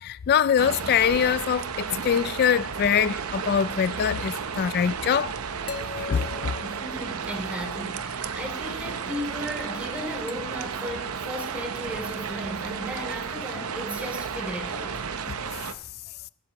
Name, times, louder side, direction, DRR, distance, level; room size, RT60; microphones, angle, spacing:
voice 1, 0.0-5.3 6.0-6.5, left 8 dB, 45° left, 0.3 m, -23 dB
sound 1, 0.6-15.7, right 6 dB, 85° right, 0.7 m, -33 dB
sound 2, 4.3-4.4 5.7-7.7 10.3-10.7 11.8-11.9, left 5 dB, 65° left, 1.1 m, -40 dB
voice 2, 6.6-14.9, equal, 5° right, 2.9 m, -35 dB
15.5 x 12.5 x 3.0 m
head